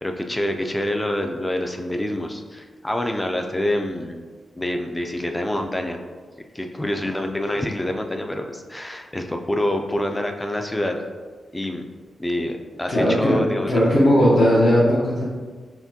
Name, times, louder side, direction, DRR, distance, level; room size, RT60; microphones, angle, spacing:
voice 1, 0.0-4.2 4.6-6.0 6.5-11.0 11.5-11.8 12.2-13.9, left 1 dB, 15° left, 4 dB, 0.4 m, -26 dB
voice 2, 12.9-13.4 13.7-15.2, equal, 50° left, -8 dB, 0.8 m, -17 dB
5.7 x 2.2 x 2.8 m, 1.5 s
wide cardioid pair, 100°, 0 cm